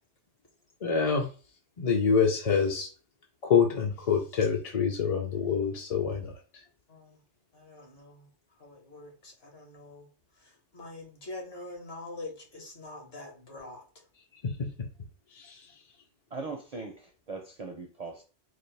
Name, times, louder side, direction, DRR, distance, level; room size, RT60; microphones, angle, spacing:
voice 1, 0.8-1.3 1.8-2.9 3.4-6.3 14.4-14.9 15.3-15.7, left 6 dB, 45° left, 0.5 m, -26 dB
voice 2, 7.5-8.3 8.6-10.0 10.7-13.8, left 2 dB, 60° left, 1.5 m, -44 dB
voice 3, 16.3-18.2, right 3 dB, 50° right, 0.5 m, -40 dB
4.0 x 2.6 x 3.2 m
omnidirectional pair, 1.2 m